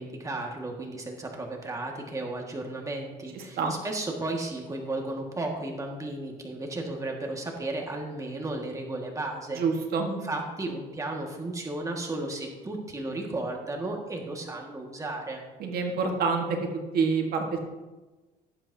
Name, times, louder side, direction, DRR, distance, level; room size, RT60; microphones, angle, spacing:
voice 1, 0.0-9.6 10.1-15.4, right 2 dB, 20° right, 1 dB, 1.8 m, -34 dB
voice 2, 3.3-3.7 9.5-10.1 15.6-16.4 16.7-17.6, right 5 dB, 65° right, 2 dB, 1.6 m, -27 dB
17.5 x 7.8 x 2.8 m, 1.2 s
cardioid pair, 110°, 17 cm